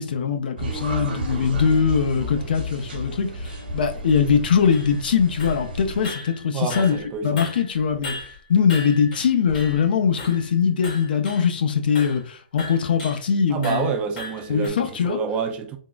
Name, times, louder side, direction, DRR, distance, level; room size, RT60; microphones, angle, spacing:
voice 1, 0.0-7.0 7.2-8.1 8.5-13.9 14.5-15.2, left 6 dB, 70° left, 0.5 m, -21 dB
sound 1, 0.6-6.1, right 1 dB, 70° right, 1.0 m, -32 dB
sound 2, 1.2-1.3 1.7-1.8 2.4-2.5 2.7-2.8 3.4-3.7 4.1-5.1 5.4-5.7 6.0-7.1 7.4-9.9 10.2-10.5 10.8-11.5 12.0-12.2 12.6-13.3 13.6-14.7, left 3 dB, 50° left, 1.5 m, -37 dB
voice 2, 6.5-7.5 13.5-15.8, right 6 dB, 20° right, 0.4 m, -28 dB
3.6 x 2.0 x 2.3 m
hypercardioid pair, 140°, 5 cm